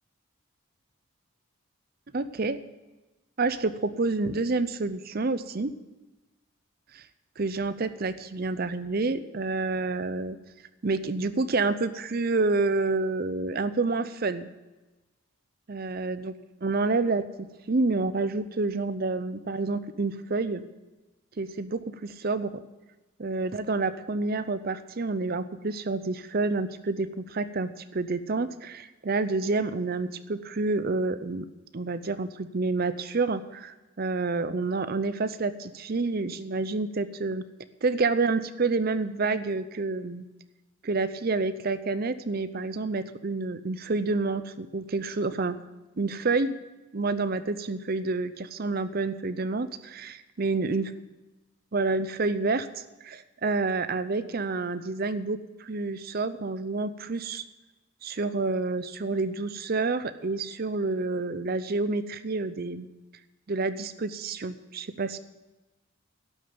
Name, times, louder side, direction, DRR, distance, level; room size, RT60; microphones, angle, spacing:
voice 1, 2.1-2.6 3.4-5.7 6.9-7.0 7.4-10.4 10.8-14.5 15.7-16.3 16.6-20.6 21.4-22.6 23.2-31.5 31.7-37.5 37.8-40.2 40.8-45.6 46.0-46.6 46.9-50.9 51.7-57.4 58.0-62.9 63.5-65.2, right 3 dB, 45° right, 13 dB, 0.6 m, -28 dB
12.0 x 6.7 x 8.7 m, 1.1 s
head